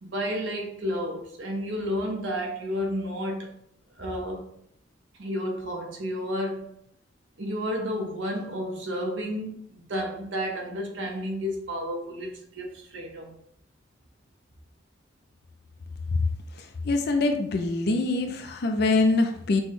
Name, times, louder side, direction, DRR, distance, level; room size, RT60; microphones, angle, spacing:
voice 1, 0.0-3.5 4.0-4.5 5.2-6.7 7.4-13.4, equal, 70° right, 1 dB, 0.9 m, -31 dB
voice 2, 16.8-19.6, left 3 dB, 55° left, 5 dB, 0.4 m, -24 dB
6.0 x 2.2 x 3.1 m, 0.70 s
head